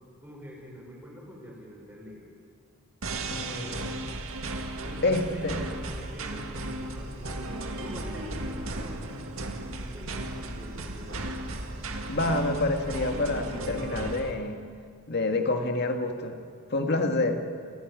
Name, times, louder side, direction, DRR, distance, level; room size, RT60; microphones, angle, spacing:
voice 1, 0.2-2.3 3.6-3.8 4.8-11.3, equal, 10° right, -3 dB, 5.8 m, -44 dB
sound 1, 3.0-14.3, right 2 dB, 75° right, 1.9 m, -35 dB
voice 2, 3.3-3.9 5.0-5.6 12.1-14.6 15.1-16.4 16.7-17.4, left 2 dB, 50° left, 5 dB, 1.9 m, -27 dB
29.0 x 11.0 x 9.7 m, 2.2 s
head